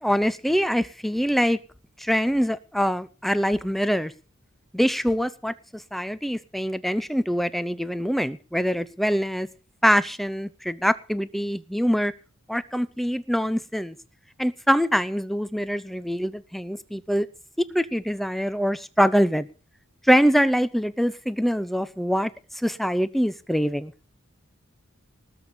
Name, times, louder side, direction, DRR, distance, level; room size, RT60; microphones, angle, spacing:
voice 1, 0.0-1.6 2.0-4.1 4.7-9.5 9.8-12.1 12.5-14.0 14.4-17.3 17.6-19.5 20.1-23.9, equal, ahead, 0.7 m, -24 dB
19.5 x 6.8 x 7.2 m
head